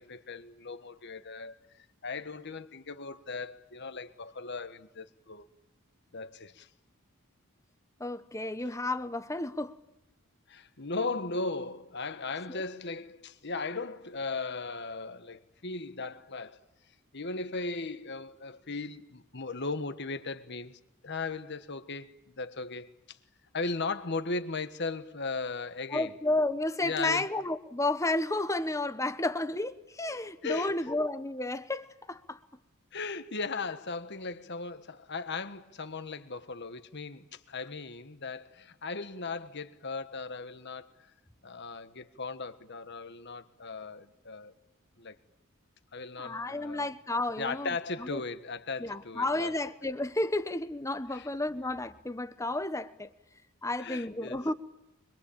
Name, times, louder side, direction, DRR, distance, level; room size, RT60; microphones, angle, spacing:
voice 1, 0.0-5.5 6.1-6.7 10.5-16.6 17.1-23.2 23.5-26.1 26.8-27.2 30.4-30.9 32.9-40.9 41.4-44.5 45.0-45.2 45.9-46.9 47.4-49.5 51.1-51.3 53.8-54.4, left 3 dB, 55° left, 1.5 m, -37 dB
voice 2, 8.0-9.8 12.5-12.6 25.9-32.4 46.2-48.2 48.8-53.1 53.6-54.5, left 2 dB, 15° left, 1.1 m, -32 dB
25.0 x 22.5 x 8.7 m
head